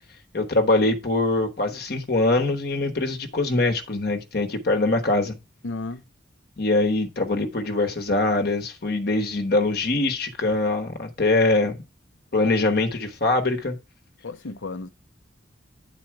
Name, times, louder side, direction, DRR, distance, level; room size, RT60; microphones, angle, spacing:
voice 1, 0.3-5.4 6.6-11.7 12.3-13.8, left 2 dB, 55° left, 1.1 m, -23 dB
voice 2, 5.6-6.0 14.2-14.9, left 3 dB, 80° left, 0.8 m, -33 dB
9.1 x 4.2 x 4.6 m
head